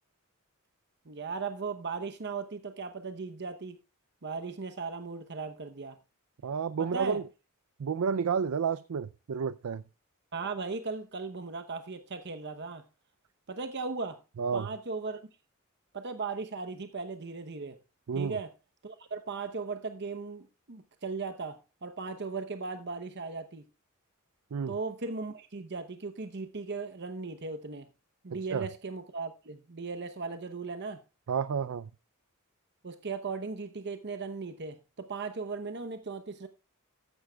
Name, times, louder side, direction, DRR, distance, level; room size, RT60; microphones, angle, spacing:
voice 1, 1.1-3.8 4.2-6.0 6.8-7.2 10.3-12.9 13.5-14.2 14.5-15.2 15.9-17.8 18.1-18.5 18.8-23.6 24.7-27.9 28.2-31.0 32.8-36.5, right 4 dB, 50° right, 0.9 m, -37 dB
voice 2, 6.4-7.2 7.8-9.8 14.4-14.7 18.1-18.4 24.5-24.7 28.5-28.7 31.3-31.9, right 6 dB, 80° right, 0.5 m, -30 dB
14.5 x 11.0 x 2.3 m
head